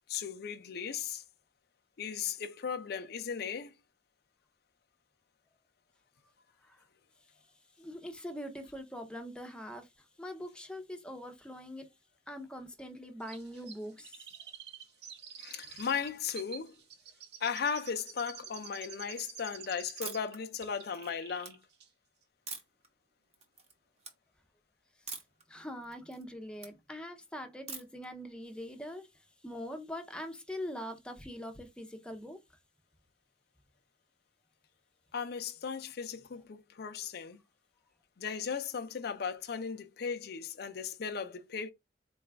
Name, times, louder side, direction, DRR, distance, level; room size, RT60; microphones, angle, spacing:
voice 1, 0.1-1.2 2.0-3.7 15.4-16.8 17.4-21.6 35.1-37.4 38.2-41.7, left 6 dB, 60° left, 0.4 m, -36 dB
voice 2, 7.8-9.9 10.2-11.9 12.3-14.3 25.5-29.1 29.4-32.4, equal, 5° left, 0.6 m, -43 dB
Chirp tweet, 13.3-20.3 20.6-21.6 21.8-21.9, right 7 dB, 65° right, 0.7 m, -49 dB
sound 1, 20.0-20.4 20.8-21.5 22.5-22.9 23.3-23.7 24.0-24.1 25.1-25.4 25.8-26.7 27.7-28.1, right 4 dB, 35° right, 0.8 m, -44 dB
4.0 x 2.3 x 3.4 m
head